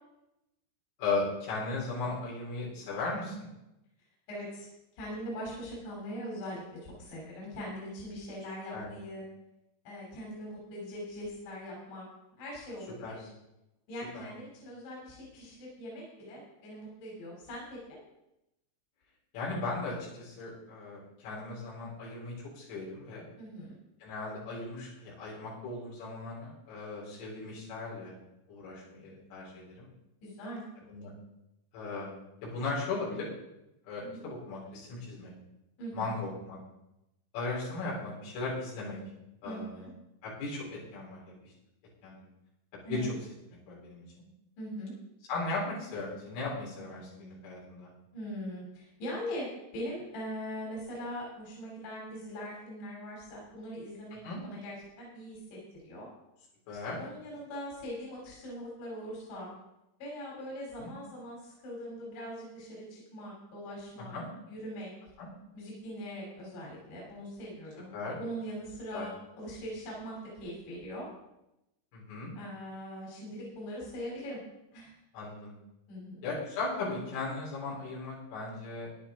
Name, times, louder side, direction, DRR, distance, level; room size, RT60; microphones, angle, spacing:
voice 1, 1.0-3.5 8.7-8.9 13.0-13.1 14.1-14.3 19.3-23.3 24.0-28.1 28.5-29.9 30.9-31.1 31.7-33.3 33.8-35.3 35.9-36.6 37.3-39.0 39.4-39.9 40.2-41.5 42.0-42.2 42.9-43.2 43.7-44.2 45.3-47.9 54.2-54.4 56.7-57.0 60.8-60.9 64.1-64.3 65.2-65.3 67.9-68.2 68.9-69.1 71.9-72.3 75.1-75.5 76.2-78.9, left 3 dB, 85° left, -6 dB, 6.5 m, -37 dB
voice 2, 4.3-4.7 4.9-9.2 9.9-12.1 12.4-13.3 13.9-18.0 23.4-23.8 30.2-30.6 34.0-34.2 35.8-36.0 39.4-39.9 42.8-43.1 44.6-44.9 48.1-49.5 49.7-56.1 56.9-59.5 60.0-64.1 64.5-64.9 65.5-71.1 72.4-74.4 74.7-74.9 75.9-76.3, equal, 70° left, -3 dB, 5.5 m, -41 dB
13.5 x 10.5 x 3.7 m, 0.89 s
omnidirectional pair, 5.6 m